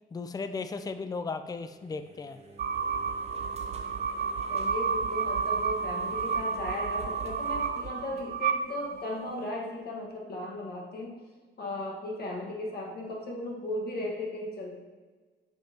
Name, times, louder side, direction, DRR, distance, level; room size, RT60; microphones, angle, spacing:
voice 1, 0.1-2.4, left 4 dB, 20° left, 9 dB, 0.4 m, -36 dB
sound 1, 1.6-8.9, right 2 dB, 30° right, 1.0 m, -50 dB
sound 2, 2.6-9.3, right 5 dB, 50° right, 0.4 m, -31 dB
voice 2, 4.5-11.2 11.6-14.8, left 1 dB, 55° left, -1 dB, 1.6 m, -36 dB
8.9 x 5.2 x 2.9 m, 1.4 s
cardioid pair, 90°, 20 cm